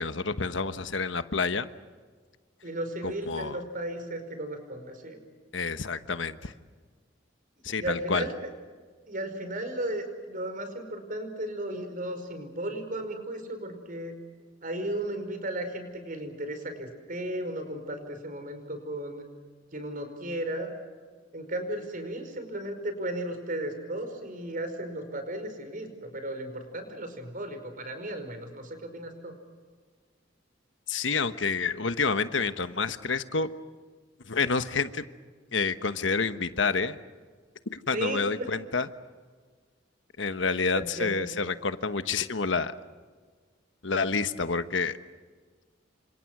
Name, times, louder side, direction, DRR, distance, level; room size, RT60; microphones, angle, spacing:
voice 1, 0.0-1.7 3.0-3.6 5.5-6.5 7.6-8.3 30.9-33.5 34.3-35.0 35.5-37.0 37.9-38.9 40.2-42.7 43.8-45.0, left 4 dB, 80° left, 10 dB, 1.2 m, -28 dB
voice 2, 2.6-5.2 7.8-8.3 9.1-14.2 14.6-19.3 19.7-20.7 21.3-29.3 37.9-38.5 40.7-41.3, right 1 dB, 45° right, 7 dB, 5.2 m, -35 dB
29.5 x 26.5 x 6.2 m, 1.5 s
head